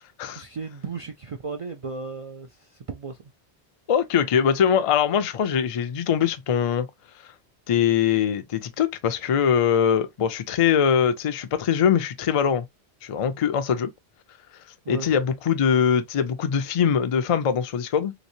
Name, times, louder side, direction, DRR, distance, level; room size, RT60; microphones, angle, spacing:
voice 1, 0.3-3.3 14.8-15.1, right 4 dB, 60° right, 0.3 m, -35 dB
voice 2, 3.9-6.9 7.7-12.7 13.0-13.9 14.9-18.1, left 8 dB, 50° left, 0.4 m, -22 dB
3.5 x 3.0 x 2.6 m
omnidirectional pair, 1.1 m